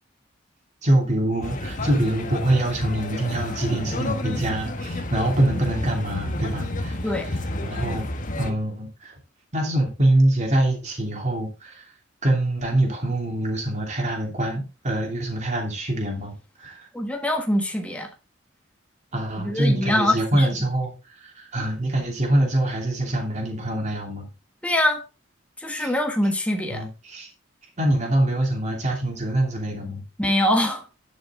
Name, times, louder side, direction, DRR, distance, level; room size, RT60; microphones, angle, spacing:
voice 1, 0.8-7.0 7.6-8.1 8.4-9.1 9.5-11.9 12.2-16.3 16.6-16.8 19.1-20.9 21.2-24.3 25.8-25.9 26.7-27.3 27.8-30.0, right 1 dB, 40° right, 2.9 m, -24 dB
sound 1, 1.4-8.5, left 1 dB, 45° left, 1.3 m, -30 dB
voice 2, 16.9-18.1 19.4-20.5 24.6-25.0 25.6-26.9 30.2-30.9, left 1 dB, 5° left, 1.4 m, -23 dB
10.5 x 6.4 x 3.7 m
head